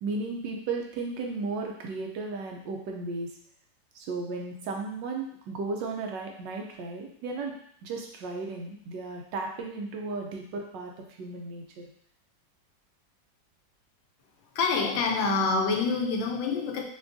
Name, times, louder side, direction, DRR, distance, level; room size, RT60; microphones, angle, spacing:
voice 1, 0.0-3.3 3.9-7.5 7.8-10.9 11.2-11.9, right 3 dB, 75° right, 1 dB, 1.3 m, -35 dB
voice 2, 14.5-16.8, left 4 dB, 85° left, 2 dB, 1.4 m, -26 dB
5.9 x 2.4 x 2.6 m, 0.65 s
omnidirectional pair, 2.0 m